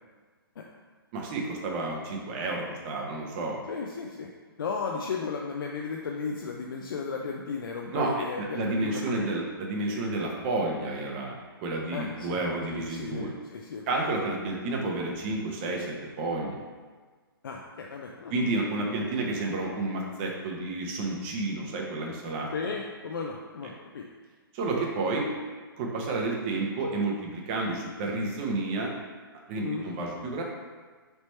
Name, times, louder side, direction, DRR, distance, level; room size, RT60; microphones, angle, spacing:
voice 1, 1.1-3.6 7.9-13.3 13.9-16.6 18.3-22.7 24.5-25.3 25.8-28.9 29.5-30.4, right 2 dB, 30° right, -1 dB, 0.7 m, -30 dB
voice 2, 3.7-4.3 4.6-9.4 11.9-12.4 12.7-13.9 17.4-19.0 22.5-24.0 29.6-29.9, left 5 dB, 65° left, 0 dB, 0.4 m, -35 dB
3.3 x 3.0 x 4.2 m, 1.5 s
hypercardioid pair, 140°, 13 cm